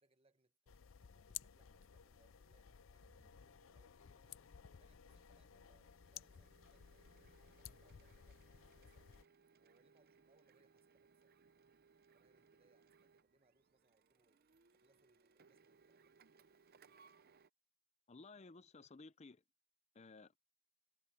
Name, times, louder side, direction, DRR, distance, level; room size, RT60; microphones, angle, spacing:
voice 1, 0.0-4.4 4.8-9.2 9.6-11.4 12.1-16.3, right 2 dB, 30° right, 1.4 m, -77 dB
sound 1, 0.7-9.2, left 10 dB, 75° left, 0.5 m, -56 dB
sound 2, 3.0-9.0, right 2 dB, 65° right, 1.2 m, -76 dB
Printer, 5.0-17.5, right 5 dB, 50° right, 0.7 m, -70 dB
voice 2, 18.1-19.4 19.9-20.4, left 3 dB, 35° left, 0.6 m, -57 dB
head